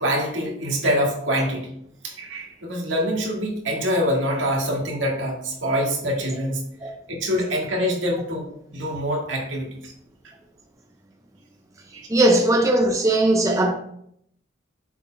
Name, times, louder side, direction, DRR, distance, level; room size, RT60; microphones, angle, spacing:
voice 1, 0.0-1.7 2.0-9.9 11.9-12.1, equal, 75° right, 1.8 m, -25 dB
voice 2, 12.1-13.7, right 1 dB, 15° right, 0.6 m, -18 dB
7.0 x 4.2 x 4.5 m
head